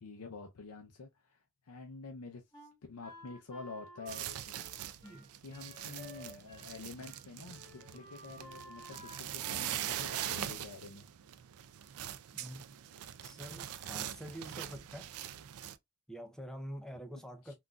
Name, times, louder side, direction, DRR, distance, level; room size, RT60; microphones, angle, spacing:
voice 1, 0.0-1.4 1.7-2.4 2.9-4.7 5.4-11.1 17.4-17.5, left 4 dB, 85° left, 0.6 m, -48 dB
Wind instrument woodwind instrument, 2.5-6.8 7.0-7.2 7.5-9.8, equal, 20° left, 1.0 m, -53 dB
sound 1, 4.1-15.8, right 11 dB, 80° right, 0.4 m, -42 dB
voice 2, 13.2-15.1 16.1-17.5, equal, 5° left, 0.4 m, -46 dB
3.8 x 2.5 x 2.2 m
head